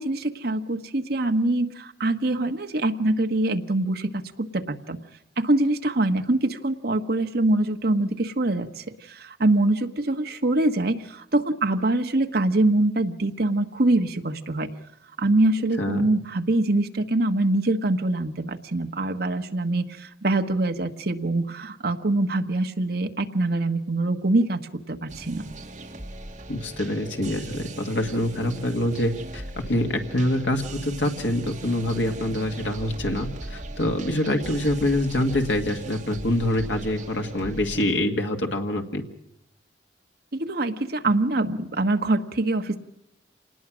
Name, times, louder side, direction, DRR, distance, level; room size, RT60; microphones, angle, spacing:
voice 1, 0.0-4.2 4.5-5.0 5.4-14.7 15.2-24.6 24.9-25.4 40.3-42.8, right 2 dB, 55° right, 5 dB, 1.3 m, -24 dB
sound 1, 25.1-37.8, right 2 dB, 40° right, 2.2 m, -38 dB
voice 2, 26.5-39.0, left 1 dB, 90° left, 3 dB, 2.0 m, -25 dB
27.0 x 19.5 x 6.2 m, 0.81 s
head